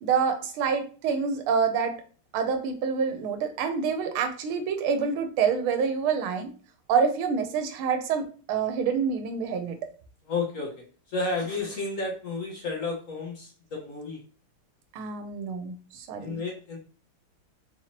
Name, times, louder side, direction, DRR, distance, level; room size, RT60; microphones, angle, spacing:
voice 1, 0.0-2.0 2.3-6.5 6.9-9.9 14.9-16.4, right 6 dB, 80° right, 6 dB, 1.5 m, -27 dB
voice 2, 10.3-10.7 11.1-14.2 16.2-16.8, left 3 dB, 70° left, -1 dB, 0.7 m, -31 dB
4.3 x 2.9 x 2.9 m, 0.40 s
omnidirectional pair, 2.4 m